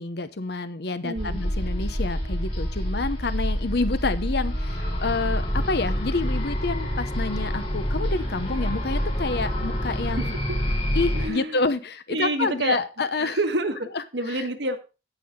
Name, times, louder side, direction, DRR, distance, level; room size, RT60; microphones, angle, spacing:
voice 1, 0.0-10.2 10.9-13.4 14.3-14.4, left 3 dB, 65° left, 12 dB, 0.9 m, -28 dB
voice 2, 1.0-1.4 10.2-10.3 11.1-11.6 12.1-12.8 13.2-14.8, right 2 dB, 85° right, 6 dB, 1.6 m, -28 dB
sound 1, 1.2-11.3, equal, 40° left, 5.2 m, -27 dB
16.5 x 5.8 x 3.7 m, 0.31 s
head